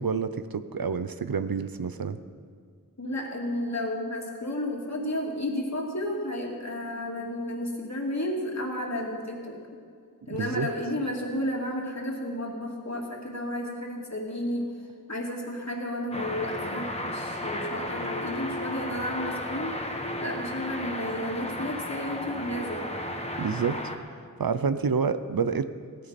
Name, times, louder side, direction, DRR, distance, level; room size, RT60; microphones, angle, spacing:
voice 1, 0.0-2.2 10.4-10.7 23.4-23.8 24.4-25.7, right 5 dB, 75° right, 11 dB, 0.6 m, -28 dB
voice 2, 3.0-9.6 10.3-14.7 15.1-19.8 20.2-22.9, left 1 dB, 50° left, -1 dB, 2.6 m, -32 dB
sound 1, 16.1-24.0, left 1 dB, 20° left, 1.5 m, -34 dB
16.5 x 15.0 x 4.2 m, 2.1 s
wide cardioid pair, 40°, 35 cm